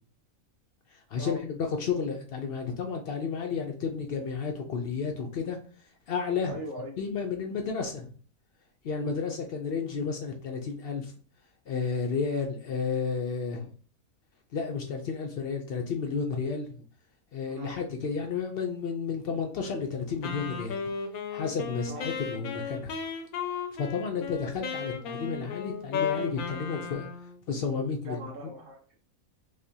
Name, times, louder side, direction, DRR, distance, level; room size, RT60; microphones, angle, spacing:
voice 1, 0.9-5.6 6.1-6.6 7.0-8.1 8.8-11.1 11.7-13.7 14.5-16.8 17.3-20.8 21.3-23.0 23.8-27.1 27.5-28.5, left 5 dB, 65° left, 3 dB, 0.5 m, -32 dB
voice 2, 6.5-6.9 9.0-9.3 17.5-17.8 21.9-22.1 24.1-24.3 28.0-28.9, right 1 dB, 50° right, -3 dB, 1.4 m, -41 dB
Wind instrument woodwind instrument, 20.2-27.4, left 6 dB, 85° left, 1.1 m, -35 dB
5.0 x 2.1 x 2.7 m, 0.40 s
omnidirectional pair, 1.5 m